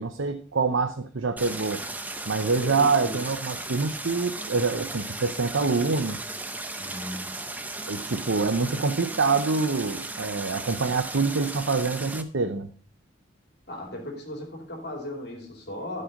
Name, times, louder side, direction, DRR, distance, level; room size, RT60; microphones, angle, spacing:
voice 1, 0.0-1.8 2.3-6.3 7.9-12.7, right 4 dB, 75° right, 7 dB, 0.8 m, -26 dB
Stream, 1.4-12.2, right 2 dB, 10° right, 0.7 m, -36 dB
voice 2, 2.6-3.2 6.8-7.4 13.7-16.0, left 1 dB, 55° left, 1 dB, 2.8 m, -37 dB
14.0 x 5.6 x 5.2 m, 0.43 s
head